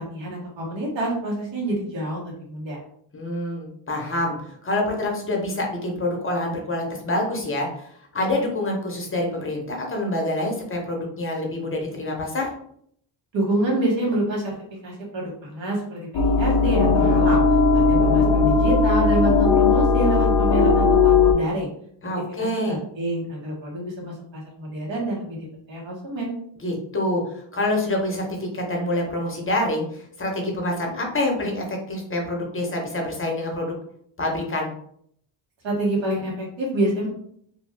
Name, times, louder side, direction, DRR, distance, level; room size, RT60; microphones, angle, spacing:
voice 1, 0.0-2.8 13.3-14.5 14.8-17.4 17.7-21.7 22.4-25.4 25.7-26.3 35.6-37.1, right 1 dB, 65° right, -3 dB, 1.3 m, -27 dB
voice 2, 3.1-12.5 22.0-22.8 26.6-33.7 34.2-34.7, left 1 dB, 25° left, 0 dB, 0.8 m, -26 dB
sound 1, 16.1-21.3, left 4 dB, 55° left, 0.5 m, -17 dB
2.6 x 2.3 x 3.3 m, 0.67 s
cardioid pair, 95°, 48 cm